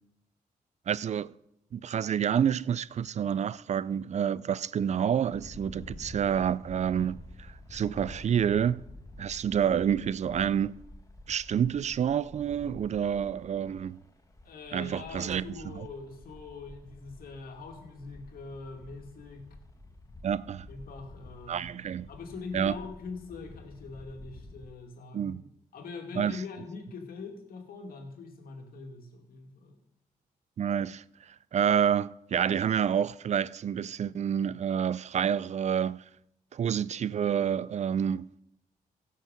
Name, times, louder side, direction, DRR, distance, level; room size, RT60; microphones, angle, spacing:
voice 1, 0.9-1.3 1.7-8.8 9.2-10.7 11.3-14.0 14.7-15.4 15.7-15.9 20.2-20.7 21.5-22.1 22.5-22.7 25.1-25.4 26.2-26.4 30.6-31.0 31.5-36.0 36.5-38.3, right 8 dB, 50° right, 0.4 m, -28 dB
sound 1, 5.3-24.7, left 1 dB, 20° left, 1.2 m, -49 dB
voice 2, 14.4-19.5 20.7-25.4 25.7-29.8, left 4 dB, 70° left, 2.3 m, -43 dB
15.5 x 6.5 x 5.2 m
cardioid pair, 65°, 16 cm